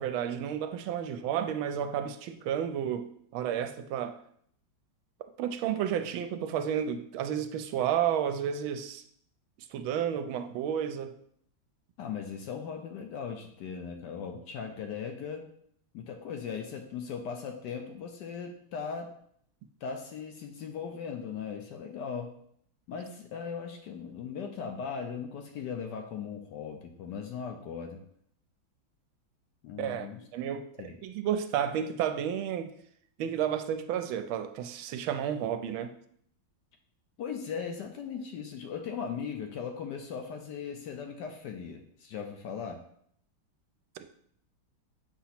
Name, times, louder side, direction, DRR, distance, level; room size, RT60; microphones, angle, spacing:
voice 1, 0.0-4.2 5.4-9.0 9.7-11.1 29.8-30.1 30.3-32.7 33.2-35.9, right 9 dB, 80° right, 1.4 m, -31 dB
voice 2, 12.0-15.5 15.9-19.1 19.8-22.3 22.9-28.0 29.6-30.2 30.8-30.9 37.2-42.8, left 6 dB, 70° left, 1.1 m, -38 dB
7.0 x 2.9 x 5.7 m
omnidirectional pair, 2.2 m